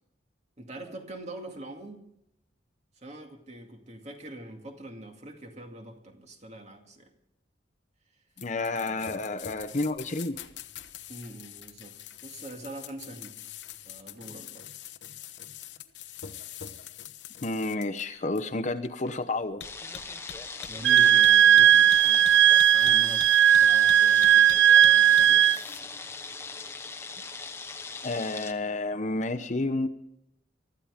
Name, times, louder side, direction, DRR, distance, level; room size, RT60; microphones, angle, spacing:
voice 1, 0.6-2.0 3.0-7.1 8.9-9.3 11.1-12.0 12.2-13.3 13.8-14.6 20.7-23.3 23.6-25.5, right 1 dB, 35° right, 2.3 m, -43 dB
sound 1, 8.4-25.8, left 9 dB, 70° left, 1.0 m, -44 dB
voice 2, 8.4-10.5 17.4-19.6 28.0-29.9, left 2 dB, 40° left, 0.8 m, -30 dB
sound 2, 19.6-28.5, left 4 dB, 15° left, 1.0 m, -40 dB
Wind instrument woodwind instrument, 20.8-25.6, right 10 dB, 70° right, 0.5 m, -18 dB
24.0 x 13.0 x 3.6 m
head